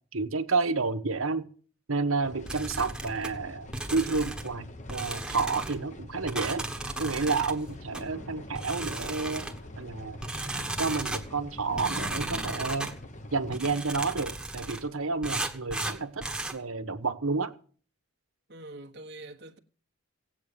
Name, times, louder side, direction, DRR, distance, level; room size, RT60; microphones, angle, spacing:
voice 1, 0.1-1.5 1.9-6.6 7.0-9.5 9.8-10.2 10.8-12.9 13.3-16.3 16.5-17.5, right 4 dB, 75° right, 1.3 m, -30 dB
sound 1, 2.2-13.6, left 1 dB, 35° left, 0.9 m, -45 dB
sound 2, 2.5-3.3 3.7-4.5 4.9-5.8 6.3-7.6 7.9-8.1 8.5-9.6 10.2-11.2 11.8-12.9 13.5-14.8 15.2-16.6, right 2 dB, 5° right, 1.2 m, -35 dB
sound 3, 7.5-15.8 16.3-16.4, left 1 dB, 75° left, 4.0 m, -48 dB
voice 2, 18.5-19.6, right 2 dB, 50° right, 1.2 m, -44 dB
17.5 x 8.4 x 6.8 m
head